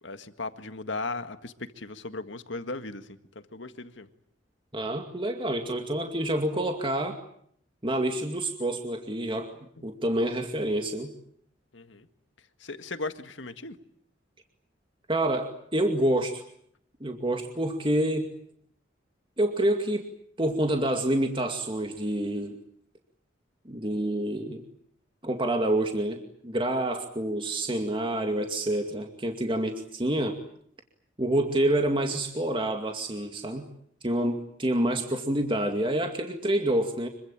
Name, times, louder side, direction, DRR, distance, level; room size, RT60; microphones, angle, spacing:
voice 1, 0.0-3.2 3.5-4.1 9.8-9.9 11.7-12.1 12.6-13.8, left 3 dB, 75° left, 9 dB, 1.8 m, -37 dB
voice 2, 4.7-7.2 7.8-9.5 9.8-11.1 15.1-16.4 17.0-18.3 19.4-20.1 20.4-22.6 23.7-24.6 25.2-30.4 31.2-33.7 34.0-37.1, right 1 dB, 25° right, 4 dB, 2.3 m, -27 dB
26.0 x 24.0 x 8.9 m, 0.68 s
head